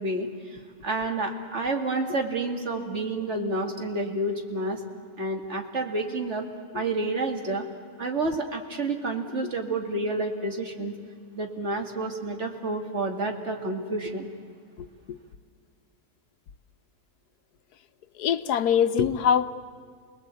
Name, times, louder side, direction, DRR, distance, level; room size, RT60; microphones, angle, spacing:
voice 1, 0.0-4.8 5.2-6.5 6.7-7.6 8.0-10.9 11.3-14.3, right 2 dB, 45° right, 2.6 m, -29 dB
voice 2, 14.8-15.2 18.2-19.6, left 8 dB, 80° left, 1.4 m, -24 dB
29.5 x 19.5 x 8.3 m
omnidirectional pair, 1.6 m